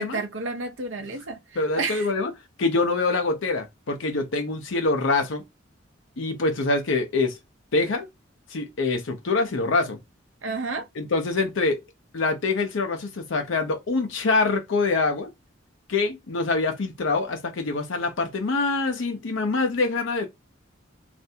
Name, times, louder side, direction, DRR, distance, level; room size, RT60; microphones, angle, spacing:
voice 1, 0.0-2.1 10.4-10.9, right 3 dB, 75° right, 0.7 m, -31 dB
voice 2, 1.6-2.3 2.6-5.4 6.2-7.4 7.7-8.1 8.5-10.0 11.0-11.8 12.1-15.3 15.9-20.3, left 3 dB, 80° left, 0.6 m, -25 dB
3.3 x 2.5 x 2.7 m
head